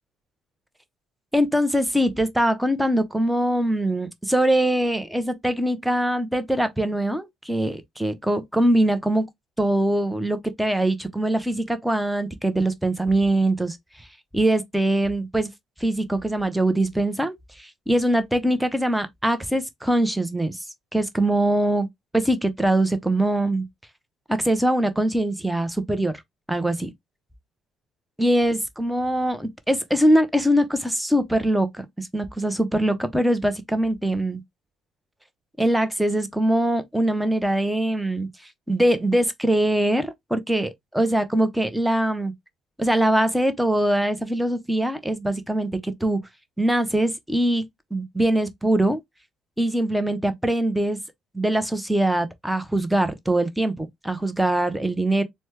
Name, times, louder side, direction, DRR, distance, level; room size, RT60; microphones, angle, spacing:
voice 1, 1.3-9.3 9.6-14.1 14.3-15.5 15.8-20.6 20.9-21.9 22.1-23.7 24.3-26.1 26.5-26.9 28.2-34.4 35.6-42.3 42.8-46.2 46.6-49.0 49.6-51.0 51.3-55.2, right 1 dB, 5° right, 0.7 m, -22 dB
4.2 x 2.2 x 3.2 m
figure-of-eight pair, 50°, 0 cm